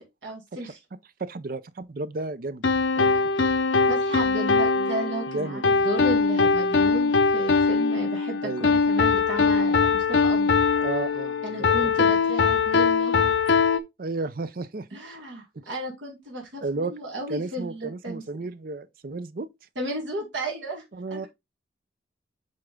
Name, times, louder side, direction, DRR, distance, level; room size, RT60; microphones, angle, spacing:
voice 1, 0.2-0.8 3.9-10.5 11.4-13.4 14.9-18.2 19.8-20.8 21.1-21.3, right 1 dB, 75° right, 2.0 m, -34 dB
voice 2, 1.2-2.6 3.0-3.2 5.3-5.7 8.4-8.7 10.8-12.0 14.0-14.9 15.5-15.6 16.6-16.9 17.3-19.5 20.9-21.3, right 3 dB, 50° right, 0.5 m, -33 dB
sound 1, 2.6-13.8, left 4 dB, 75° left, 0.7 m, -22 dB
8.5 x 3.4 x 3.6 m
head